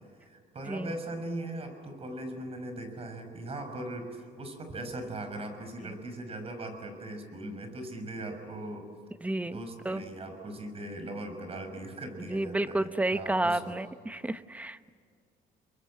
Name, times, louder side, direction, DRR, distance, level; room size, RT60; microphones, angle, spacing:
voice 1, 0.2-8.9 9.5-13.7, right 1 dB, 35° right, 6 dB, 5.8 m, -39 dB
voice 2, 9.2-9.6 9.8-10.0 12.3-14.9, right 2 dB, 10° right, 12 dB, 0.9 m, -31 dB
29.5 x 22.5 x 8.6 m, 2.2 s
cardioid pair, 110°, 17 cm